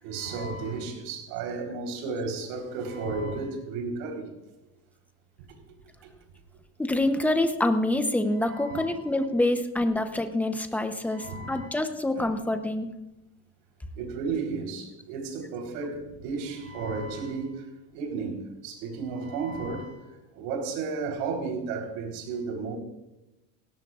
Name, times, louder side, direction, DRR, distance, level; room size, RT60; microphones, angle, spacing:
voice 1, 0.0-4.3 8.3-9.1 11.0-11.7 12.1-12.3 14.0-17.6 17.9-20.0 20.3-22.8, right 4 dB, 75° right, 4.1 m, -33 dB
voice 2, 6.8-12.9, left 1 dB, 5° left, 0.8 m, -26 dB
18.5 x 17.0 x 2.5 m
cardioid pair, 150°, 40 cm